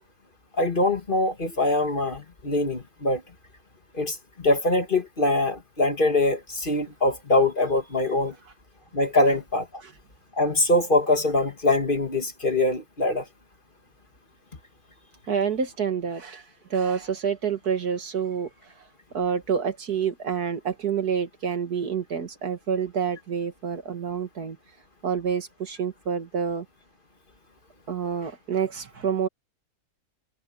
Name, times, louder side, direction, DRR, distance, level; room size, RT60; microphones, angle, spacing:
voice 1, 0.6-3.2 3.9-8.3 8.9-9.7 10.4-13.2, left 2 dB, 35° left, 2.1 m, -23 dB
voice 2, 15.3-16.4 16.7-18.5 19.1-24.6 25.0-26.7 27.9-29.3, right 7 dB, 80° right, 2.5 m, -28 dB
omnidirectional pair, 1.6 m